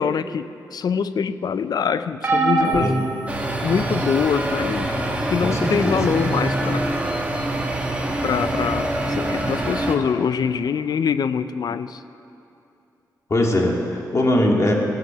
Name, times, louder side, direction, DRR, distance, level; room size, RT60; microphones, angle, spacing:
voice 1, 0.0-3.0 3.6-4.9 5.3-6.9 8.2-12.0, left 6 dB, 70° left, 13 dB, 0.4 m, -24 dB
sound 1, 2.2-4.0 4.8-5.0 6.3-6.4, right 2 dB, 35° right, 2.3 m, -23 dB
sound 2, 3.3-10.0, right 1 dB, 20° right, 1.6 m, -25 dB
voice 2, 5.4-6.1 13.3-14.7, left 1 dB, 45° left, 0 dB, 2.1 m, -21 dB
15.0 x 7.9 x 6.7 m, 2.7 s
cardioid pair, 70°, 7 cm